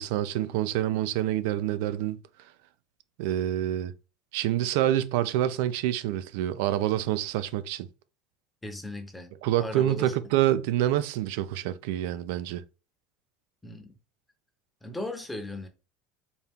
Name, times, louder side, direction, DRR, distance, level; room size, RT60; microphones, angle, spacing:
voice 1, 0.0-2.2 3.2-3.9 4.3-7.9 9.4-12.6, right 12 dB, 80° right, 0.4 m, -27 dB
voice 2, 8.6-9.3 9.6-10.1 13.6-13.9 14.8-15.7, left 2 dB, 5° left, 0.7 m, -37 dB
4.3 x 2.3 x 3.5 m
cardioid pair, 145°, 0 cm